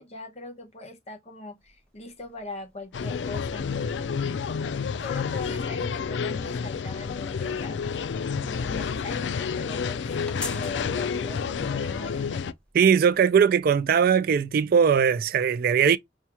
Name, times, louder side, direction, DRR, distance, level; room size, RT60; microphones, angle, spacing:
voice 1, 0.0-3.9 4.3-7.8 8.4-12.4, left 3 dB, 40° left, 1.0 m, -41 dB
sound 1, 1.6-15.0, left 2 dB, 5° left, 0.8 m, -49 dB
sound 2, 2.9-12.5, left 6 dB, 80° left, 0.4 m, -30 dB
voice 2, 12.7-16.0, right 7 dB, 55° right, 0.3 m, -20 dB
5.5 x 2.3 x 2.9 m
head